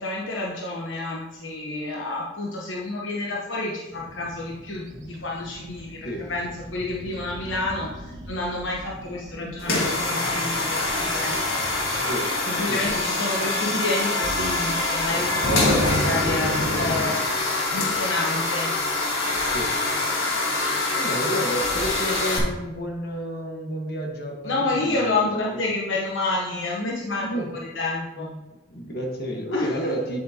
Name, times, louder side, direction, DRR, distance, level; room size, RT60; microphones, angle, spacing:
voice 1, 0.0-11.4 12.5-18.7 24.4-28.3 29.5-29.7, left 2 dB, 70° left, -2 dB, 1.0 m, -29 dB
sound 1, 3.9-12.1, equal, 70° right, 1.4 m, -42 dB
sound 2, 9.6-22.4, left 2 dB, 90° left, 1.8 m, -24 dB
voice 2, 20.9-25.3 27.3-27.5 28.1-28.3 28.7-30.2, equal, 50° left, 1 dB, 1.5 m, -30 dB
8.3 x 7.7 x 2.9 m, 1.1 s
head